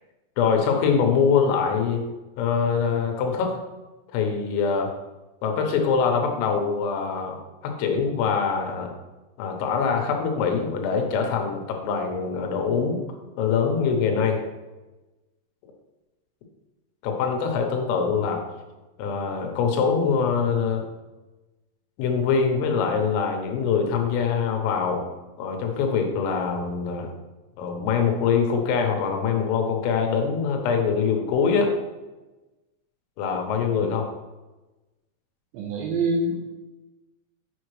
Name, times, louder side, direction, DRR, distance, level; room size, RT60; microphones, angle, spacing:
voice 1, 0.4-2.0 2.4-3.6 4.1-4.9 5.4-8.9 9.4-13.0 13.4-14.4 17.0-18.4 19.0-20.8 22.0-25.0 25.4-27.1 27.6-31.7 33.2-34.1, left 6 dB, 85° left, 3 dB, 3.7 m, -23 dB
voice 2, 35.5-36.4, right 2 dB, 75° right, 0 dB, 2.8 m, -26 dB
7.7 x 7.0 x 3.2 m, 1.1 s
omnidirectional pair, 5.8 m